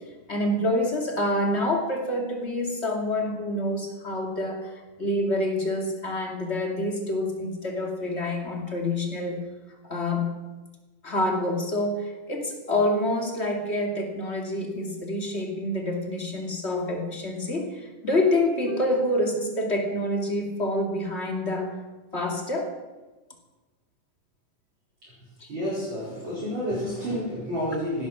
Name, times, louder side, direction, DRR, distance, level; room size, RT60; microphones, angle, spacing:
voice 1, 0.3-9.4 9.8-10.3 11.0-21.7 22.1-22.8 25.4-25.5, left 1 dB, 20° left, 1 dB, 2.1 m, -27 dB
voice 2, 25.5-28.1, equal, 35° right, -9 dB, 5.5 m, -30 dB
17.0 x 12.5 x 6.2 m, 1.2 s
omnidirectional pair, 3.8 m